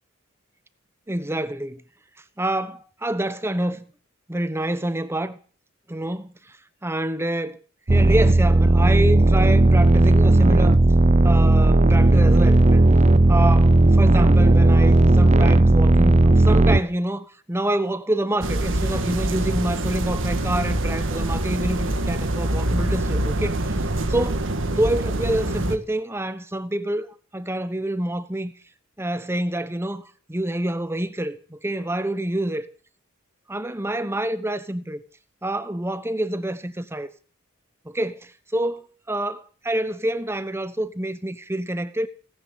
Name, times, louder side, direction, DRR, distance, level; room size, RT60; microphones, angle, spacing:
voice 1, 1.1-1.8 2.4-3.9 4.3-5.4 5.9-6.3 6.8-7.6 7.9-10.8 11.2-12.8 13.3-23.7 24.1-27.1 27.3-28.5 29.0-32.7 33.5-35.0 35.4-37.1 37.8-42.1, right 1 dB, 10° right, 1.1 m, -27 dB
sound 1, 7.9-16.8, right 2 dB, 30° right, 0.7 m, -15 dB
sound 2, 18.4-25.8, right 1 dB, 65° right, 1.8 m, -25 dB
18.0 x 10.5 x 7.6 m
head